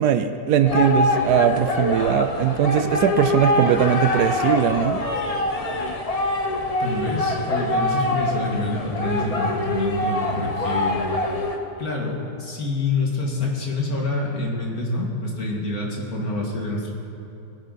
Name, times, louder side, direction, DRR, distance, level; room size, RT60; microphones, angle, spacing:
voice 1, 0.0-5.0, right 9 dB, 75° right, 9 dB, 1.1 m, -20 dB
sound 1, 0.6-11.6, left 2 dB, 30° left, 0.8 m, -24 dB
voice 2, 6.8-11.0 11.8-16.9, left 2 dB, 60° left, -1 dB, 2.4 m, -27 dB
19.0 x 11.0 x 4.0 m, 2.9 s
omnidirectional pair, 1.8 m